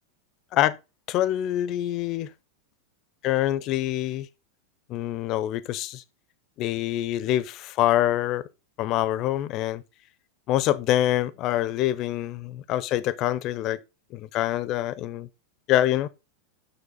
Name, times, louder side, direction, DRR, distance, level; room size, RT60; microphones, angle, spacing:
voice 1, 1.1-2.3 3.2-4.3 4.9-6.0 6.6-8.5 8.8-9.8 10.5-13.8 14.1-15.3 15.7-16.1, left 13 dB, 40° left, 0.6 m, -25 dB
7.2 x 6.3 x 3.8 m
figure-of-eight pair, 90°, 0 cm